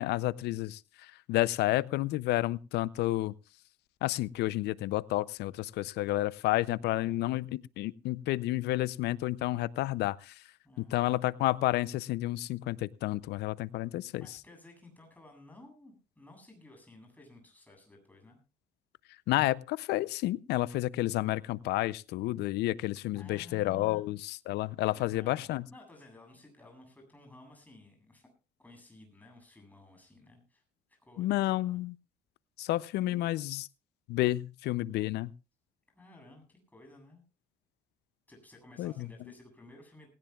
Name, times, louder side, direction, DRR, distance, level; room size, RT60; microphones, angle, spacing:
voice 1, 0.0-3.3 4.0-10.3 10.9-14.3 19.3-25.6 31.2-31.9 32.6-33.7 34.1-35.3 38.8-39.1, left 16 dB, 80° left, 20 dB, 0.6 m, -30 dB
voice 2, 10.6-11.0 14.2-18.4 23.1-24.0 24.8-28.3 28.6-30.6 30.9-31.8 33.1-33.2 35.9-37.2 38.3-40.1, left 2 dB, 10° left, 2 dB, 7.9 m, -55 dB
19.5 x 17.5 x 2.4 m, 0.31 s
cardioid pair, 110°, 17 cm